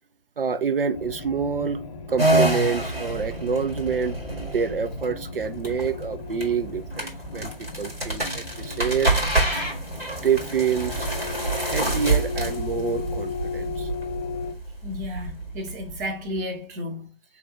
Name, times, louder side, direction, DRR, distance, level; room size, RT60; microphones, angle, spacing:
voice 1, 0.4-1.8 2.1-4.2 4.5-7.5 7.8-9.1 10.2-11.1 11.6-13.9, right 6 dB, 70° right, 0.6 m, -27 dB
sound 1, 0.9-14.5, left 5 dB, 35° left, 0.7 m, -36 dB
sound 2, 2.2-16.4, right 2 dB, 85° right, 1.6 m, -27 dB
voice 2, 14.8-17.4, left 1 dB, 20° right, 0.7 m, -33 dB
4.2 x 2.9 x 3.6 m
figure-of-eight pair, 135°, 29 cm